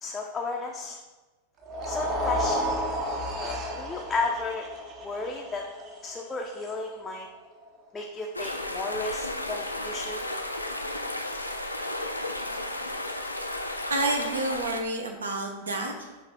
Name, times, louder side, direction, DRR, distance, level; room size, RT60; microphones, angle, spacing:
voice 1, 0.0-1.0 1.9-3.0 3.3-4.7 5.0-5.6 6.0-7.3 7.9-10.2, left 3 dB, 15° left, 0 dB, 0.4 m, -33 dB
sound 1, 1.6-7.9, equal, 35° right, 0.7 m, -32 dB
sound 2, 8.3-14.8, left 1 dB, 85° left, 0.3 m, -33 dB
voice 2, 13.9-16.2, right 2 dB, 70° right, 3 dB, 0.6 m, -30 dB
5.7 x 2.6 x 3.4 m, 1.2 s
figure-of-eight pair, 90°, 0 cm